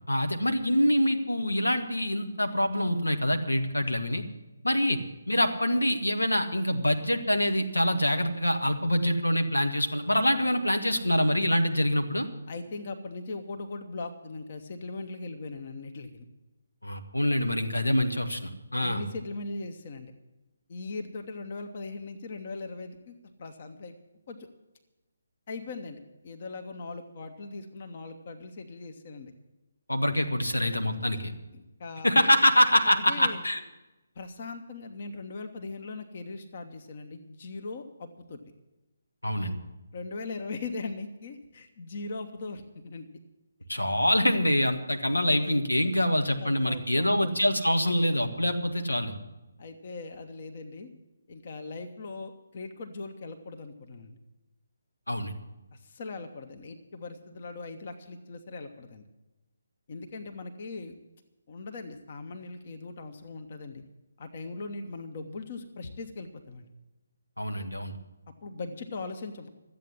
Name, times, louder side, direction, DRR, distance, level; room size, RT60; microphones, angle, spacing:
voice 1, 0.1-4.2 4.6-5.0 5.3-12.3 16.8-19.0 29.9-31.3 32.0-33.6 39.2-39.5 43.7-49.1 55.1-55.4 67.4-68.0, equal, 80° left, 6 dB, 1.5 m, -25 dB
voice 2, 12.5-16.2 18.8-20.1 20.7-24.0 24.3-24.5 25.5-29.3 31.1-31.2 31.5-32.2 33.1-33.4 34.1-38.4 39.9-43.1 45.4-45.5 46.4-47.3 49.6-50.9 51.3-54.2 55.7-59.1 59.9-60.9 61.5-63.8 64.2-66.7 68.4-69.5, left 3 dB, 40° left, 6 dB, 1.1 m, -40 dB
13.0 x 8.5 x 9.8 m, 1.0 s
figure-of-eight pair, 145°, 0 cm